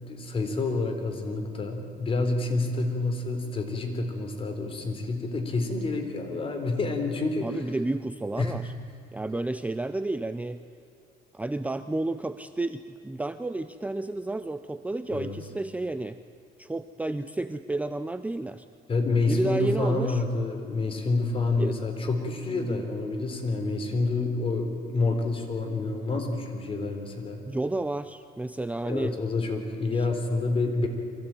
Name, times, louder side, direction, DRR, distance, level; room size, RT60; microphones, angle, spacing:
voice 1, 0.1-7.5 8.4-8.6 15.1-15.4 18.9-27.4 28.8-30.9, left 3 dB, 35° left, 4 dB, 3.8 m, -28 dB
voice 2, 7.4-8.7 9.1-10.6 11.3-16.2 16.6-18.6 19.3-20.2 21.6-21.8 22.5-22.9 27.5-29.2 29.9-30.1, right 2 dB, 10° right, 11 dB, 0.6 m, -31 dB
24.0 x 16.0 x 9.0 m, 2.6 s
cardioid pair, 110°, 17 cm